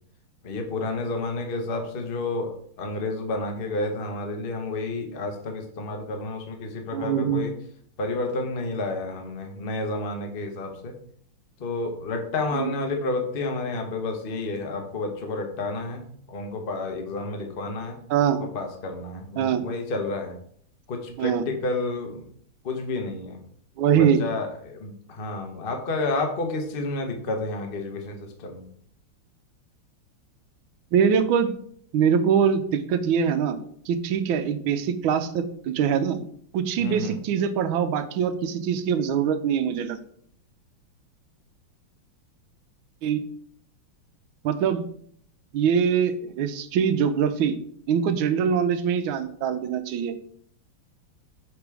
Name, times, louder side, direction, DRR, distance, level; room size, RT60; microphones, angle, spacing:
voice 1, 0.4-7.5 8.0-10.9 11.6-18.0 18.5-20.3 20.9-22.3 22.6-23.4 23.9-28.7 36.8-37.2, left 2 dB, 60° left, 4 dB, 0.5 m, -30 dB
voice 2, 6.9-7.5 12.5-12.7 18.1-18.4 19.4-19.7 21.2-21.4 23.8-24.2 30.9-31.5 31.9-33.6 33.9-36.2 36.5-40.0 43.0-43.2 44.4-44.8 45.5-47.6 47.9-50.1, right 7 dB, 75° right, 10 dB, 1.3 m, -23 dB
5.8 x 3.6 x 4.6 m, 0.62 s
omnidirectional pair, 2.3 m